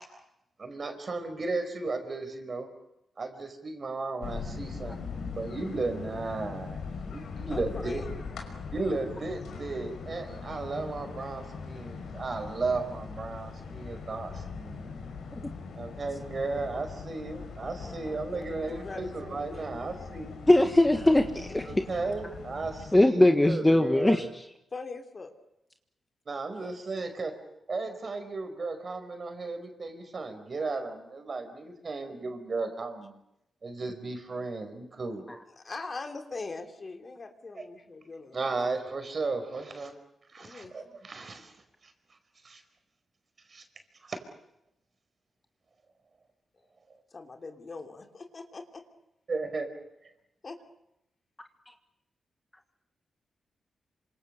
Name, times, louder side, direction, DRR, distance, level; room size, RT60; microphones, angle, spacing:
voice 1, 0.6-2.7 3.2-5.0 5.3-8.0 8.7-14.9 15.7-20.4 21.7-24.3 26.3-27.4 27.7-33.2 33.6-35.3 37.5-37.6 38.3-39.9 40.3-41.5 41.8-41.9 42.4-42.6 43.5-43.6 44.0-44.2 49.3-49.7, right 3 dB, 45° right, 7 dB, 5.0 m, -35 dB
sound 1, 4.2-23.0, left 5 dB, 90° left, 5.6 m, -41 dB
voice 2, 7.5-8.1 17.8-18.2 18.6-19.6 21.6-21.7 24.7-25.3 26.5-26.7 35.6-38.4 40.4-40.7 47.1-48.8 50.4-50.6, left 3 dB, 40° left, 5 dB, 3.0 m, -41 dB
voice 3, 20.5-21.6 22.9-24.4, left 1 dB, 15° left, 6 dB, 1.6 m, -21 dB
27.0 x 26.5 x 6.8 m, 0.82 s
cardioid pair, 90°, 0 cm